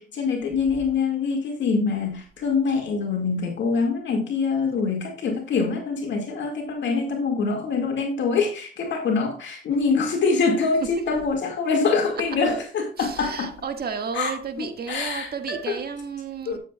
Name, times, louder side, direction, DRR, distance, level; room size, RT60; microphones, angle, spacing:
voice 1, 0.0-13.5 14.1-15.8 16.5-16.6, left 4 dB, 65° left, 2.1 m, -25 dB
voice 2, 13.0-16.6, right 6 dB, 50° right, 1.8 m, -32 dB
13.0 x 7.5 x 2.3 m
cardioid pair, 90°, 20 cm